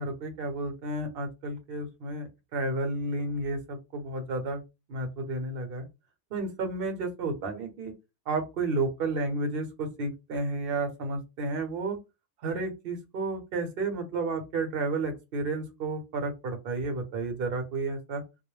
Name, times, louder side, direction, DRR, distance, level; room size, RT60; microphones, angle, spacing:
voice 1, 0.0-4.6 4.9-5.9 6.3-7.9 8.3-12.0 12.4-18.2, right 2 dB, 55° right, 5 dB, 0.9 m, -32 dB
2.3 x 2.0 x 3.0 m, 0.25 s
omnidirectional pair, 1.3 m